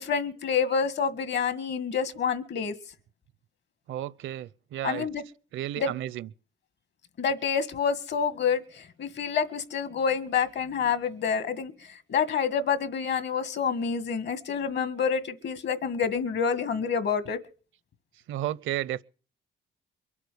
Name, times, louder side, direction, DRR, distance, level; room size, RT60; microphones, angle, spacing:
voice 1, 0.0-2.7 4.8-5.2 5.8-5.9 7.2-11.7 12.1-17.4, left 6 dB, 60° left, 1.8 m, -28 dB
voice 2, 3.9-5.1 5.5-6.3 18.3-19.0, right 13 dB, 80° right, 0.7 m, -32 dB
23.0 x 8.4 x 6.9 m
cardioid pair, 90°, 20 cm